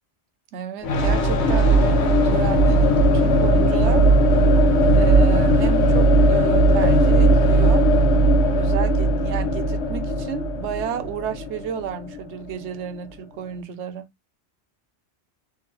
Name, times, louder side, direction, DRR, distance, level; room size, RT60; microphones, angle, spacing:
voice 1, 0.5-4.0 4.9-7.8 8.5-14.1, right 8 dB, 85° right, 0.9 m, -32 dB
sound 1, 0.8-12.6, right 1 dB, 75° left, 1.1 m, -18 dB
2.8 x 2.4 x 2.9 m
omnidirectional pair, 1.1 m